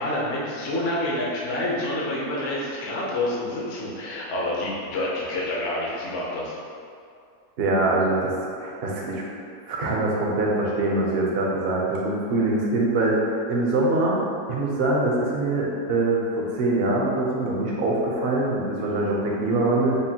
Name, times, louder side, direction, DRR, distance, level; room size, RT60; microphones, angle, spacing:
voice 1, 0.0-6.5, left 1 dB, 60° left, -5 dB, 0.9 m, -28 dB
voice 2, 7.6-9.2 9.7-13.2 13.5-14.2 14.5-20.0, right 2 dB, 55° right, -3 dB, 0.7 m, -23 dB
5.2 x 2.5 x 2.8 m, 2.3 s
omnidirectional pair, 1.7 m